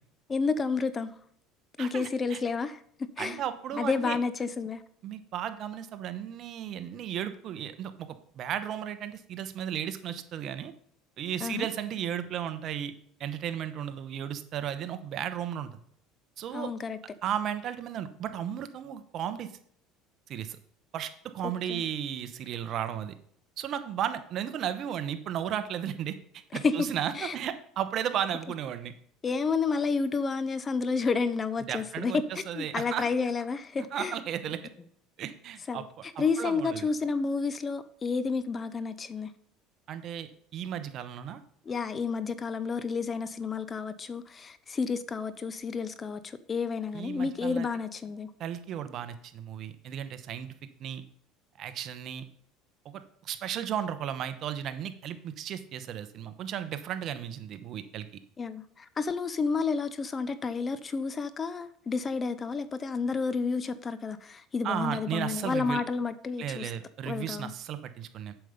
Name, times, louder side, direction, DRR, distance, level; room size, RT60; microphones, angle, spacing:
voice 1, 0.3-1.1 1.8-3.4 3.7-4.8 11.4-11.7 16.5-17.0 21.4-21.8 26.5-26.9 27.2-27.3 29.2-34.2 35.7-35.8 36.2-39.3 41.7-48.3 58.4-66.7 67.0-67.5, left 4 dB, 30° left, 0.7 m, -30 dB
voice 2, 1.8-2.4 3.2-4.2 5.0-10.7 11.2-12.9 13.2-15.8 16.4-16.7 17.2-19.5 20.3-20.6 20.9-23.1 23.6-26.2 26.5-28.9 31.6-33.0 33.8-34.6 35.2-36.9 39.9-41.4 46.9-47.7 48.4-50.5 50.8-51.0 51.6-52.2 52.8-58.1 64.6-65.8 66.4-68.3, right 9 dB, 50° right, 1.0 m, -34 dB
7.6 x 7.0 x 5.1 m
supercardioid pair, 100°, 0 cm